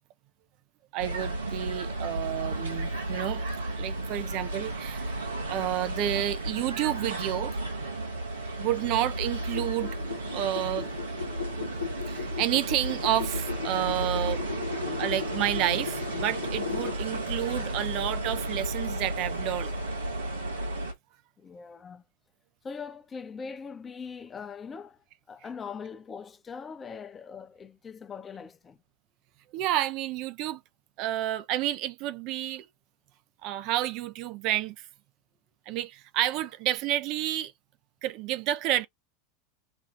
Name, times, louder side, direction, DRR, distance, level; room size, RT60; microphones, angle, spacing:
voice 1, 0.9-3.5 3.8-5.2 5.5-7.5 8.6-9.9 10.3-10.9 12.1-14.4 15.0-19.7 29.5-30.6 31.0-32.6 33.4-34.9 35.7-37.5 38.0-38.9, right 13 dB, 55° right, 0.4 m, -30 dB
sound 1, 1.0-20.9, right 2 dB, 85° right, 1.1 m, -33 dB
sound 2, 9.4-17.0, left 7 dB, 90° left, 0.9 m, -37 dB
voice 2, 21.4-22.0 22.6-28.8, left 5 dB, 25° left, 0.7 m, -41 dB
5.1 x 2.4 x 2.6 m
hypercardioid pair, 85°, 0 cm